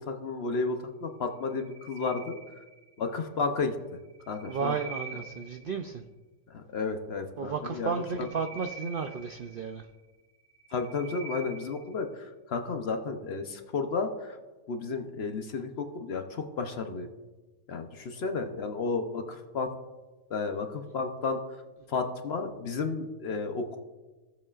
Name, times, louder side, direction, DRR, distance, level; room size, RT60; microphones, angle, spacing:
voice 1, 0.0-2.4 3.0-4.0 4.3-4.8 6.5-8.3 10.7-14.4 14.7-17.1 17.7-19.7 20.3-21.4 21.9-23.8, left 4 dB, 55° left, 6 dB, 0.8 m, -32 dB
sound 1, 1.4-3.1 4.0-5.9 7.9-10.0 10.4-12.0, right 5 dB, 80° left, 3.0 m, -46 dB
voice 2, 4.5-6.0 7.4-9.9, right 5 dB, 65° right, 6 dB, 0.5 m, -33 dB
16.5 x 7.3 x 2.4 m, 1.2 s
omnidirectional pair, 1.5 m